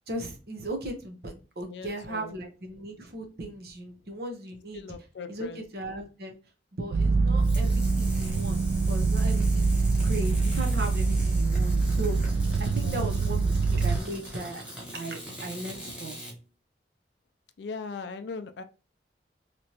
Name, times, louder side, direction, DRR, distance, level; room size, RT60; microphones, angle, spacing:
voice 1, 0.1-5.0 5.3-6.4 6.7-12.2 12.6-14.7 14.9-16.2, right 1 dB, 55° right, 0.8 m, -37 dB
voice 2, 1.7-2.4 4.7-5.6 12.8-13.4 17.6-18.6, left 4 dB, 75° left, 0.4 m, -39 dB
sound 1, 6.9-14.0, right 3 dB, 80° right, 0.3 m, -24 dB
sound 2, 7.4-16.3, equal, 5° right, 0.9 m, -42 dB
3.3 x 2.9 x 2.8 m
head